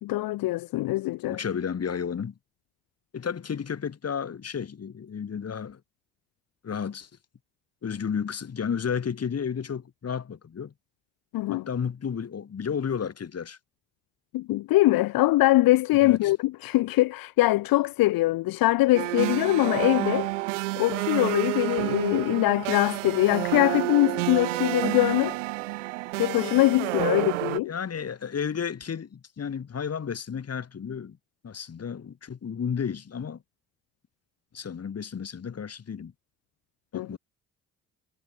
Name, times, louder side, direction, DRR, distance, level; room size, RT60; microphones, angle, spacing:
voice 1, 0.0-1.4 11.3-11.6 14.3-20.3 20.8-25.3 26.2-27.7 36.9-37.1, left 17 dB, 65° left, 1.6 m, -23 dB
voice 2, 1.3-2.4 3.1-5.8 6.6-7.1 7.8-10.7 11.5-13.6 16.0-16.3 27.7-31.2 31.4-33.4 34.5-36.1 36.9-37.2, left 7 dB, 40° left, 3.0 m, -32 dB
sound 1, 18.9-27.6, right 20 dB, 85° right, 2.1 m, -29 dB
hypercardioid pair, 45°, 37 cm